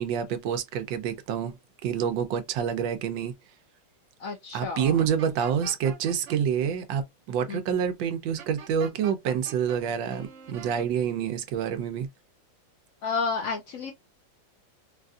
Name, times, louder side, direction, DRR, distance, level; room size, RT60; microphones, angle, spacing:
voice 1, 0.0-1.6 1.8-3.3 4.5-12.1, right 8 dB, 85° right, 1.4 m, -27 dB
voice 2, 4.2-5.0 7.5-7.6 13.0-13.9, left 4 dB, 70° left, 0.8 m, -31 dB
sound 1, 5.0-6.4 8.4-9.8 10.1-10.9, right 7 dB, 60° right, 0.8 m, -44 dB
4.0 x 2.5 x 2.3 m
omnidirectional pair, 2.0 m